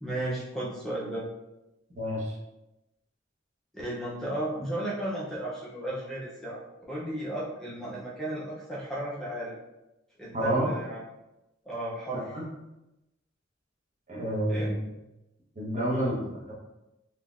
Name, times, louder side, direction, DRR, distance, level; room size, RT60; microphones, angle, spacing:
voice 1, 0.0-1.3 3.7-6.6 6.9-9.5 10.2-11.0 11.7-12.4 14.5-14.7 15.9-16.2, right 1 dB, ahead, -6 dB, 0.5 m, -34 dB
voice 2, 1.9-2.3 10.3-10.7 12.1-12.5 14.1-14.7 15.6-16.5, right 1 dB, 40° right, -4 dB, 0.9 m, -29 dB
3.7 x 2.8 x 2.4 m, 0.94 s
head